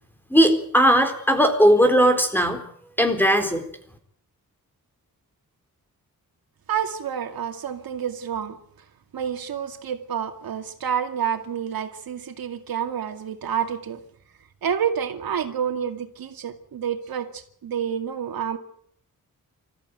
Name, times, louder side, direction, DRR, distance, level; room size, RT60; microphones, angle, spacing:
voice 1, 0.3-2.6 3.0-3.6, equal, 5° left, 6 dB, 4.2 m, -18 dB
voice 2, 6.7-8.6 9.1-14.0 14.6-18.6, right 8 dB, 85° right, 6 dB, 2.3 m, -28 dB
26.0 x 14.5 x 9.2 m, 0.66 s
wide cardioid pair, 115°, 35 cm